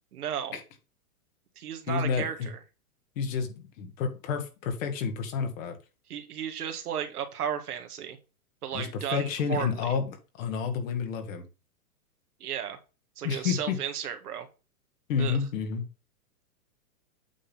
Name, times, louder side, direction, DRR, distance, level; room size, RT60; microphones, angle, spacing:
voice 1, 0.1-0.6 1.6-2.6 6.1-8.2 8.6-9.9 12.4-12.8 13.2-14.5 15.2-15.4, right 9 dB, 75° right, 7 dB, 1.7 m, -34 dB
voice 2, 1.9-2.5 3.2-5.8 8.7-11.5 13.2-13.8 15.1-15.8, left 6 dB, 60° left, 6 dB, 2.0 m, -30 dB
8.4 x 3.8 x 5.5 m, 0.32 s
hypercardioid pair, 130°, 45 cm